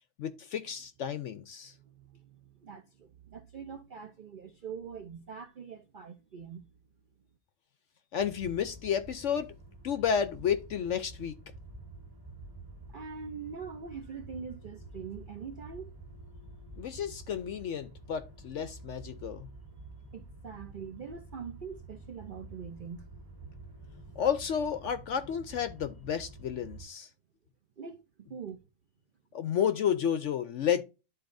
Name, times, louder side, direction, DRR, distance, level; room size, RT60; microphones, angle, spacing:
voice 1, 0.2-1.7 8.1-9.5 9.8-11.4 16.8-19.5 24.2-27.1 29.3-30.8, left 8 dB, 65° left, 0.8 m, -31 dB
voice 2, 1.6-6.7 12.9-15.9 20.1-23.1 27.8-28.6, right 6 dB, 70° right, 0.4 m, -43 dB
sound 1, 8.2-26.9, right 2 dB, 15° right, 1.4 m, -49 dB
12.0 x 4.0 x 2.6 m
omnidirectional pair, 1.7 m